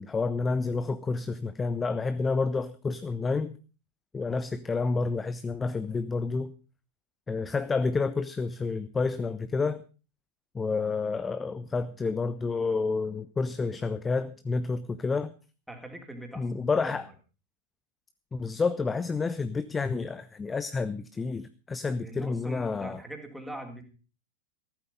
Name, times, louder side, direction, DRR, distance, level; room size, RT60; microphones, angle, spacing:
voice 1, 0.0-3.6 4.1-6.5 7.3-9.8 10.5-15.3 16.4-17.1 18.3-23.0, left 4 dB, 15° left, 0.7 m, -29 dB
voice 2, 4.3-4.8 15.7-16.4 16.7-17.1 22.0-23.8, right 1 dB, ahead, 3.5 m, -42 dB
15.0 x 12.5 x 5.5 m
figure-of-eight pair, 90°, 0 cm